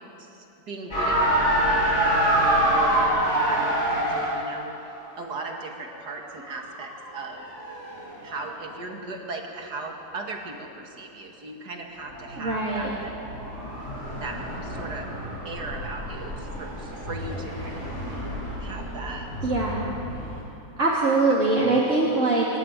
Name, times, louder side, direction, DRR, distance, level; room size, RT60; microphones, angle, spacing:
voice 1, 0.2-4.7 5.2-7.5 8.2-13.1 14.2-15.1 15.4-17.9 18.6-19.5 21.4-22.0, right 3 dB, 90° right, 2 dB, 2.7 m, -38 dB
sound 1, 0.9-4.5 6.1-8.4 12.0-20.4, right 1 dB, 45° left, 6.0 m, -27 dB
voice 2, 12.4-12.9 19.4-19.8 20.8-22.5, right 3 dB, 50° right, -5 dB, 2.9 m, -22 dB
26.5 x 13.5 x 9.2 m, 3.0 s
omnidirectional pair, 1.7 m